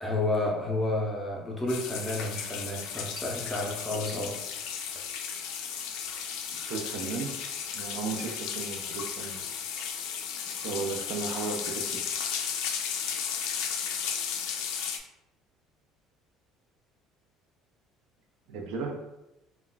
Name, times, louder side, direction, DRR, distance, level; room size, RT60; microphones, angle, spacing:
voice 1, 0.0-4.4, left 2 dB, 10° left, -3 dB, 0.6 m, -31 dB
sound 1, 1.7-15.0, left 7 dB, 75° left, 0.3 m, -34 dB
voice 2, 6.7-7.4 7.7-9.4 10.6-12.0 18.5-19.0, right 4 dB, 75° right, 2 dB, 0.5 m, -35 dB
2.3 x 2.2 x 3.8 m, 0.91 s
cardioid pair, 165°, 0 cm